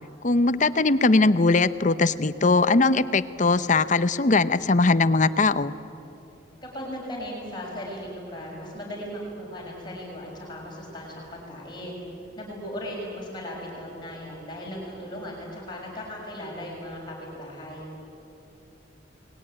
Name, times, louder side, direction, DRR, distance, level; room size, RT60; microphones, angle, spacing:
voice 1, 0.2-5.7, left 3 dB, 40° left, 14 dB, 0.8 m, -20 dB
voice 2, 6.6-12.0 12.4-17.9, equal, 25° left, -3 dB, 6.5 m, -37 dB
29.0 x 20.5 x 9.8 m, 3.0 s
head